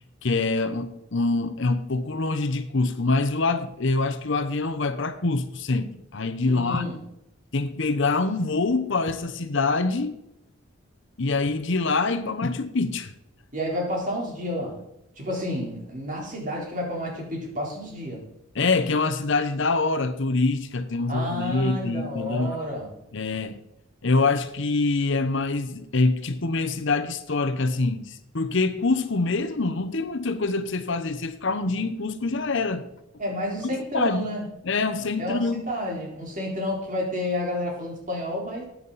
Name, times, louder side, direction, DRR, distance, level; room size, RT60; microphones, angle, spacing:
voice 1, 0.2-6.8 7.5-10.2 11.2-13.1 18.5-22.6 23.1-23.6 24.0-32.9 33.7-34.3 34.6-35.7, left 3 dB, 60° left, 0.9 m, -25 dB
voice 2, 6.4-7.0 13.5-14.8 15.2-18.3 21.1-22.9 33.2-34.4 35.2-38.7, left 1 dB, 40° right, 3.8 m, -30 dB
14.5 x 9.5 x 4.1 m
head